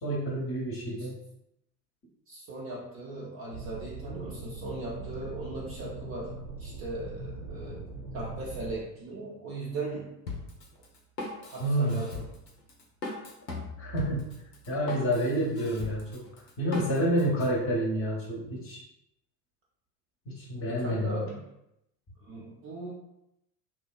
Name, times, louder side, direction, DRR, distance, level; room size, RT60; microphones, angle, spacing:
voice 1, 0.0-1.2 11.6-12.0 13.8-14.3 14.7-16.2 16.6-18.8 20.3-21.2, right 1 dB, 30° left, -2 dB, 0.8 m, -29 dB
voice 2, 2.3-7.9 8.1-10.1 11.4-12.3 20.7-21.4 22.2-22.9, right 2 dB, 30° right, -4 dB, 0.5 m, -38 dB
sound 1, 3.5-8.8, right 3 dB, 65° right, 0.8 m, -41 dB
Drum kit, 10.3-17.5, left 3 dB, 80° left, 0.7 m, -40 dB
2.9 x 2.2 x 2.2 m, 0.83 s
figure-of-eight pair, 70°, 49 cm